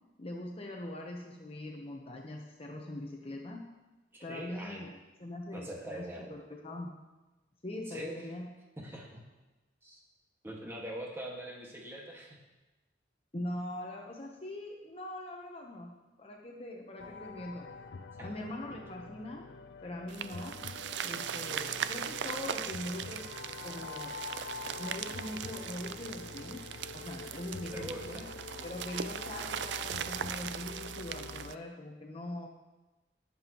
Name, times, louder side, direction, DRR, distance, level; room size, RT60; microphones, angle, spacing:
voice 1, 0.2-3.7 4.2-4.9 5.2-6.9 7.6-8.5 13.3-17.7 18.2-19.4 19.8-20.6 21.0-23.2 23.6-24.2 24.8-26.7 26.9-28.3 28.6-32.5, left 1 dB, 35° left, 0 dB, 0.9 m, -42 dB
voice 2, 4.1-4.9 5.5-6.3 7.9-8.3 8.8-9.2 9.8-10.0 10.4-12.4 18.2-18.3 18.7-18.8 27.7-28.3, right 1 dB, 15° right, -2 dB, 1.7 m, -43 dB
sound 1, 17.0-31.5, left 4 dB, 75° left, 0.5 m, -46 dB
sound 2, 20.1-31.5, right 8 dB, 85° right, 0.4 m, -39 dB
19.0 x 7.1 x 3.0 m, 1.1 s
head